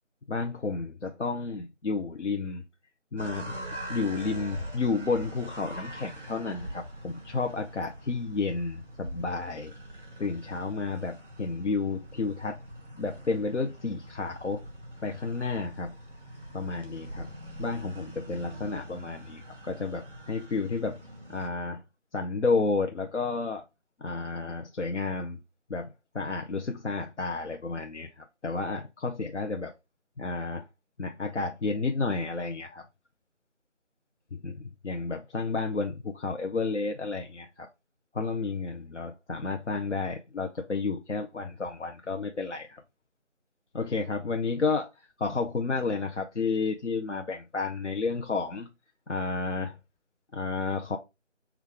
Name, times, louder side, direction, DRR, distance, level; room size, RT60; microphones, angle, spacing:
voice 1, 0.3-2.6 3.1-3.6 3.9-9.7 10.2-12.6 13.0-14.6 15.0-15.9 16.5-17.3 17.6-21.0 21.3-21.8 22.1-23.6 24.0-25.4 25.7-25.9 26.1-29.7 30.2-30.6 31.0-32.8 34.3-37.7 38.1-42.8 43.7-44.9 45.2-48.7 49.1-49.7 50.3-51.0, left 4 dB, 65° left, 0.5 m, -31 dB
sound 1, 3.2-21.5, right 1 dB, 45° right, 1.3 m, -43 dB
3.4 x 2.3 x 3.5 m
figure-of-eight pair, 180°, 38 cm